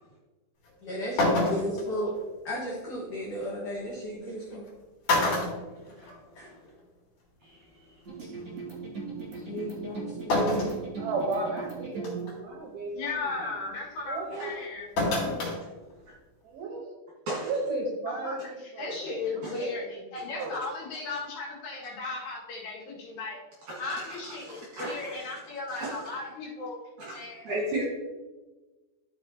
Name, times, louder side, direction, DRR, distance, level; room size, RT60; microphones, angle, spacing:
plastic bucket drop, 0.7-0.8 1.2-1.8 3.4-3.5 4.5-4.7 5.1-6.5 6.8-6.9 8.1-8.2 10.3-10.8 11.4-11.5 12.0-12.3 15.0-15.6 15.9-16.0, left 2 dB, 50° left, 3.5 m, -26 dB
voice 1, 0.8-2.1 2.4-4.7 6.4-6.5 9.4-10.7, equal, 80° left, -4 dB, 1.8 m, -34 dB
voice 2, 5.9-6.5 7.4-7.8 8.3-8.4 9.3-9.5 14.3-14.6 15.6-15.7 17.3-17.5 19.4-19.5 23.7-25.3 25.7-26.1 27.0-27.8, right 2 dB, 60° right, -6 dB, 2.2 m, -37 dB
sound 1, 8.1-12.2, right 4 dB, 35° right, 2.3 m, -39 dB
voice 3, 11.0-13.5 14.0-14.6 16.4-16.9 17.4-20.6, right 3 dB, 75° right, -1 dB, 2.2 m, -35 dB
voice 4, 12.9-14.9 18.1-18.4 18.8-23.4 23.8-26.8 27.1-27.4, left 3 dB, 65° left, -5 dB, 3.7 m, -36 dB
13.0 x 6.0 x 2.8 m, 1.2 s
omnidirectional pair, 5.9 m